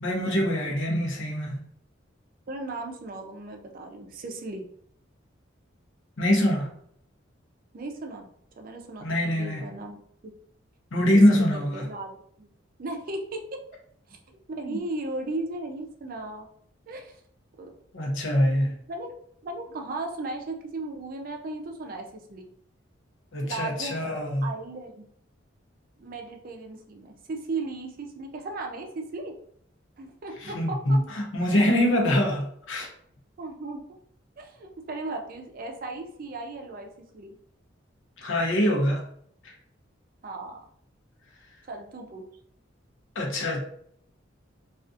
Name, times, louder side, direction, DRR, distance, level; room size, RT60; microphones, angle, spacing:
voice 1, 0.0-1.7 6.2-6.7 9.0-9.6 10.9-11.9 14.7-14.8 17.9-18.7 23.3-24.5 30.4-32.9 38.2-39.1 39.4-39.5 43.1-43.6, equal, 80° left, 0 dB, 0.7 m, -24 dB
voice 2, 2.5-4.7 7.7-8.3 8.6-10.0 11.3-11.4 11.7-12.5 12.8-13.6 14.1-16.5 16.9-17.2 17.6-17.8 18.9-19.1 19.4-22.5 23.4-24.0 24.4-25.0 26.0-29.4 30.0-31.0 33.4-33.9 34.4-37.4 40.2-40.6 41.7-42.2, right 2 dB, 45° right, 3 dB, 0.4 m, -36 dB
2.4 x 2.4 x 2.5 m, 0.65 s
head